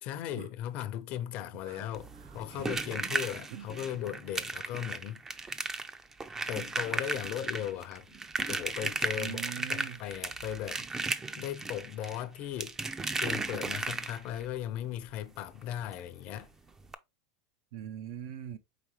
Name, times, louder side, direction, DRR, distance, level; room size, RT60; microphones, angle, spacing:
voice 1, 0.0-5.6 6.5-8.2 8.5-12.8 13.2-16.5, left 11 dB, 50° left, 0.5 m, -38 dB
sound 1, 1.9-14.4 15.9-16.0 16.3-16.4 16.8-16.9, right 3 dB, 15° right, 0.4 m, -35 dB
voice 2, 9.2-10.0 17.7-18.6, right 10 dB, 70° right, 0.5 m, -41 dB
4.9 x 3.2 x 3.1 m
supercardioid pair, 125°, 3 cm